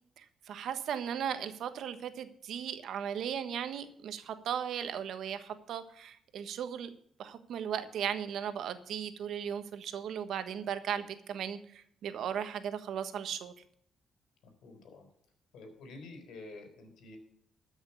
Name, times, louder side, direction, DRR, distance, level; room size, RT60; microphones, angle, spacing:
voice 1, 0.2-6.9 7.2-13.5, right 8 dB, 70° right, 1.3 m, -37 dB
voice 2, 14.4-15.1 15.5-17.2, left 2 dB, 80° left, 3.9 m, -49 dB
13.5 x 6.4 x 7.0 m
cardioid pair, 90°, 0 cm